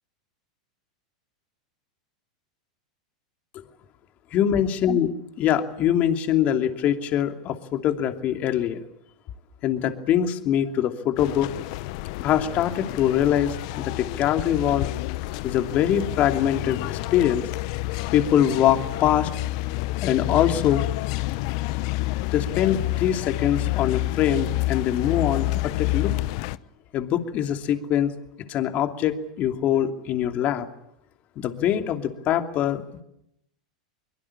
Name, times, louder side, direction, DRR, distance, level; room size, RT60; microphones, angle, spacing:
voice 1, 4.3-5.1 5.4-8.8 9.6-11.5 12.2-14.9 15.4-17.4 18.1-19.3 20.0-20.9 22.3-26.1 26.9-28.1 28.5-30.7 31.4-33.0, left 10 dB, 45° left, 6 dB, 2.8 m, -23 dB
sound 1, 11.2-26.6, left 19 dB, 60° left, 0.9 m, -29 dB
23.5 x 22.5 x 8.7 m, 0.78 s
hypercardioid pair, 100°, 4 cm